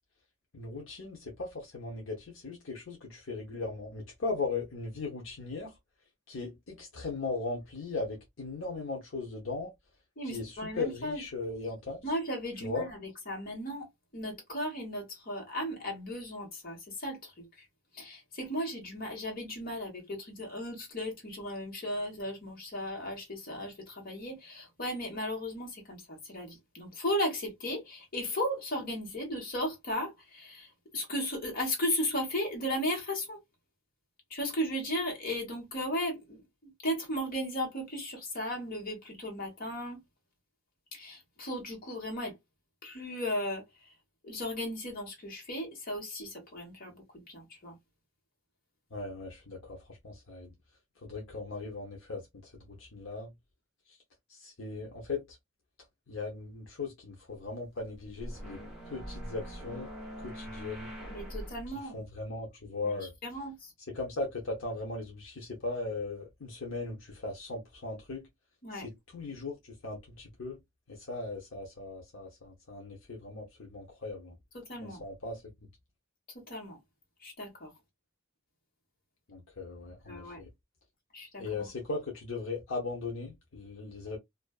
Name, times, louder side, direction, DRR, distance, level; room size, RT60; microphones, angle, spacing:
voice 1, 0.5-5.8 6.3-9.7 10.2-12.0 12.6-12.9 48.9-50.5 51.0-53.3 53.9-54.0 54.3-55.4 56.1-60.9 61.7-63.1 63.9-68.3 68.7-70.6 70.9-74.4 74.8-75.4 79.3-80.5 81.4-84.2, left 3 dB, 70° left, 0.7 m, -38 dB
voice 2, 10.2-11.2 12.0-13.9 14.1-17.7 17.9-33.4 34.3-40.0 40.9-42.3 42.8-43.9 44.2-47.8 61.1-62.0 63.2-63.7 68.6-68.9 74.5-75.0 76.3-76.8 77.2-77.7 80.1-80.4 81.1-81.7, equal, 45° left, 1.2 m, -36 dB
sound 1, 57.8-61.7, equal, 5° right, 0.8 m, -43 dB
2.4 x 2.3 x 2.3 m
head